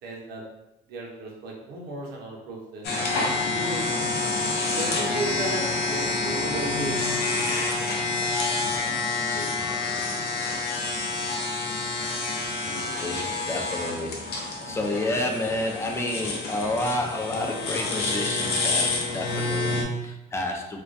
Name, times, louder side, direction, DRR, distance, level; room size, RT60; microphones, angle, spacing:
voice 1, 0.0-0.4 0.9-3.8 4.8-9.0 9.3-9.8, right 2 dB, 70° right, -1 dB, 0.6 m, -36 dB
sound 1, 2.8-19.8, left 3 dB, 75° left, 0.5 m, -28 dB
voice 2, 13.0-20.8, left 1 dB, 15° left, 2 dB, 0.3 m, -30 dB
2.2 x 2.2 x 2.5 m, 0.92 s
cardioid pair, 110°, 17 cm